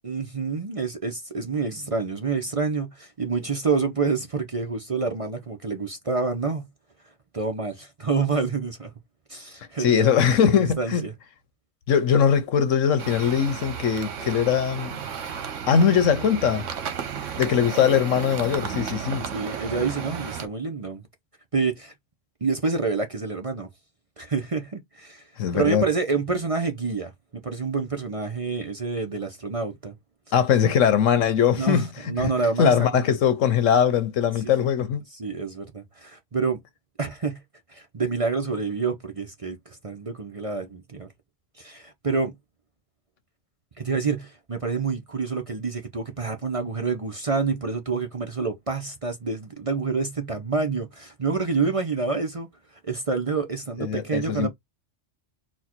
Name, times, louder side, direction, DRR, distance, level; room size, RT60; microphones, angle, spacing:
voice 1, 0.0-6.7 7.3-8.9 9.3-10.2 10.5-11.1 19.3-21.0 21.5-21.9 22.4-23.7 24.2-25.2 25.5-29.9 31.5-33.0 34.4-34.5 35.1-36.6 37.0-37.4 37.7-41.1 41.6-42.3 43.8-52.5 52.8-54.5, right 4 dB, 35° right, 0.7 m, -28 dB
voice 2, 9.8-11.0 11.9-15.0 15.7-16.7 17.4-19.3 25.4-25.8 30.3-31.9 32.2-32.3 32.6-35.0 53.8-54.5, left 8 dB, 85° left, 1.2 m, -21 dB
sound 1, 13.0-20.5, right 7 dB, 75° right, 1.2 m, -33 dB
4.3 x 2.3 x 4.3 m
omnidirectional pair, 1.3 m